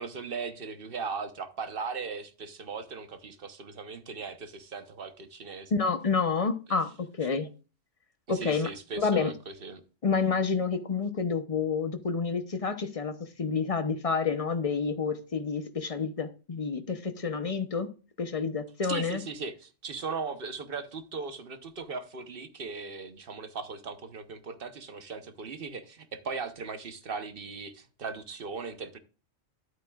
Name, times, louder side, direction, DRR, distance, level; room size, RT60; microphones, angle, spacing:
voice 1, 0.0-5.7 8.3-9.8 18.8-29.0, right 5 dB, 45° right, 1.1 m, -38 dB
voice 2, 5.7-6.9 7.2-7.5 8.3-8.7 9.0-9.3 10.0-17.9 18.2-19.2, left 5 dB, 35° left, 0.7 m, -29 dB
11.5 x 8.7 x 2.3 m
omnidirectional pair, 1.4 m